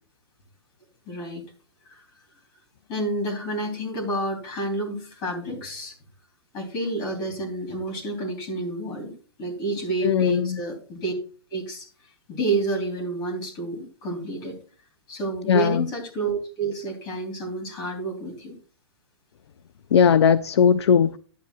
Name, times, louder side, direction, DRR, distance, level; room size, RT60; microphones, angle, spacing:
voice 1, 1.1-1.4 1.8-2.0 2.9-5.9 6.5-9.1 9.4-11.1 11.5-11.9 12.3-14.6 15.1-18.6, right 2 dB, 30° left, 3.3 m, -29 dB
voice 2, 10.0-10.6 15.5-15.9 19.9-21.2, left 7 dB, 70° left, 0.5 m, -18 dB
11.0 x 9.4 x 2.4 m
hypercardioid pair, 150°, 14 cm